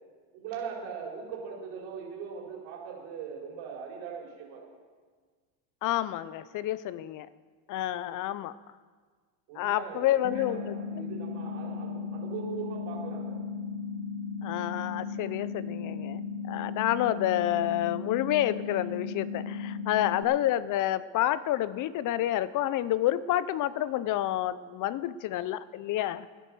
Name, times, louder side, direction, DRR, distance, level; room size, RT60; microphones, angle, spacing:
voice 1, 0.3-4.7 9.5-13.4, right 6 dB, 65° right, -2 dB, 4.4 m, -40 dB
voice 2, 5.8-7.3 7.7-8.5 9.6-10.7 14.4-26.3, left 13 dB, 40° left, 18 dB, 0.6 m, -29 dB
sound 1, 10.2-20.2, left 5 dB, 80° left, 1.5 m, -36 dB
14.5 x 10.0 x 6.2 m, 1.6 s
supercardioid pair, 115°, 48 cm